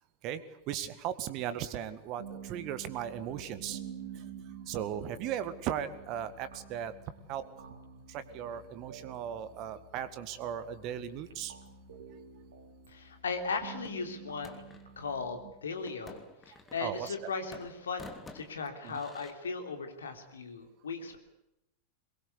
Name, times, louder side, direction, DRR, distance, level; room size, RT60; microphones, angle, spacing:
voice 1, 0.2-3.8 4.1-4.2 4.7-6.9 7.3-7.4 8.1-11.5 16.8-17.3 18.8-19.0, right 10 dB, 40° right, 13 dB, 1.8 m, -37 dB
sound 1, 2.2-15.5, right 6 dB, 60° right, 3.4 m, -49 dB
voice 2, 12.9-14.6 15.0-16.2 16.5-21.2, left 4 dB, 70° left, 6 dB, 3.5 m, -37 dB
sound 2, 13.8-14.9 15.9-17.2 17.5-19.3, left 3 dB, 15° left, 3.0 m, -51 dB
23.0 x 21.5 x 8.3 m, 0.88 s
figure-of-eight pair, 90°, 0 cm